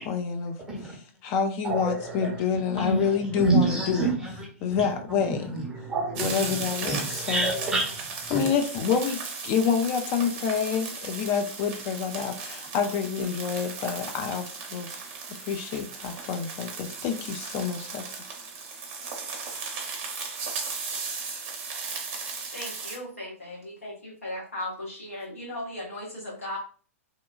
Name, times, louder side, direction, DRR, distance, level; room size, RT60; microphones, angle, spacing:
voice 1, 0.1-0.6 0.8-4.1 4.6-5.6 6.2-7.5 8.3-15.1 15.4-18.2, left 6 dB, 30° left, 0.3 m, -28 dB
voice 2, 1.6-2.3 2.8-4.9 5.2-8.5, right 2 dB, 10° right, 0.8 m, -28 dB
sound 1, 6.2-23.0, right 4 dB, 35° right, 0.6 m, -36 dB
voice 3, 22.5-26.6, left 1 dB, 80° left, 1.1 m, -37 dB
2.8 x 2.2 x 2.3 m
figure-of-eight pair, 105°, 8 cm